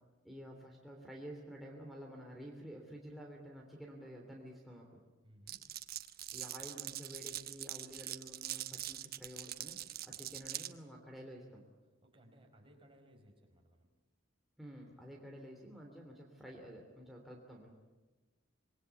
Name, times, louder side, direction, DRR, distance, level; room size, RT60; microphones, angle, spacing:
voice 1, 0.2-5.0 6.3-9.8 10.0-11.6 14.6-17.7, equal, ahead, -2 dB, 3.1 m, -50 dB
voice 2, 5.2-5.7 10.1-10.2 12.0-13.9, equal, 30° right, 2 dB, 4.8 m, -62 dB
Glass, 5.5-10.7, right 12 dB, 55° right, 1.0 m, -43 dB
26.5 x 21.5 x 8.3 m, 1.2 s
head